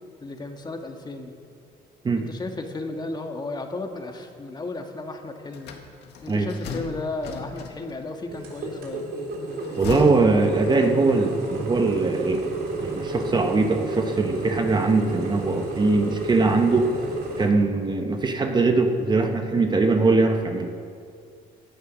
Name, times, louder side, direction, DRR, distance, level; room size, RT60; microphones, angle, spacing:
voice 1, 0.2-1.3 2.2-5.7 6.2-9.1, left 2 dB, 25° left, 4 dB, 1.6 m, -34 dB
sound 1, 5.5-8.1 9.4-11.2, left 5 dB, 80° left, 1.8 m, -36 dB
sound 2, 8.3-17.4, right 2 dB, 70° right, 3.5 m, -31 dB
voice 2, 9.8-12.5 12.8-16.9 17.4-20.7, right 3 dB, 25° right, 5 dB, 1.1 m, -21 dB
17.5 x 11.0 x 6.3 m, 2.3 s
cardioid pair, 110°, 17 cm